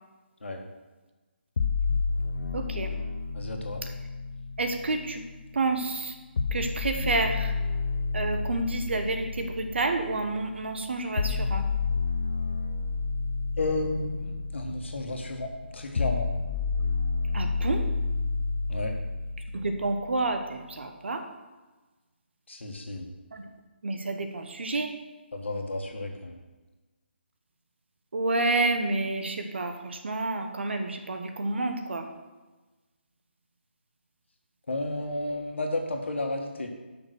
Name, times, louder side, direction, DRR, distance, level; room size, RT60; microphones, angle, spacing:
sound 1, 1.6-5.6 6.4-20.4, left 4 dB, 60° left, 0.7 m, -31 dB
voice 1, 2.5-2.9 4.6-5.2 5.5-6.2 6.5-7.5 8.1-11.6 17.3-17.9 19.5-21.2 23.3-23.5 23.8-24.9 28.1-32.1, right 2 dB, 70° right, 6 dB, 1.2 m, -29 dB
voice 2, 3.3-3.8 13.6-16.3 18.7-18.9 22.5-23.1 25.3-26.4 34.7-36.7, left 2 dB, 80° left, 2 dB, 1.6 m, -32 dB
6.6 x 5.9 x 6.4 m, 1.2 s
hypercardioid pair, 160°, 6 cm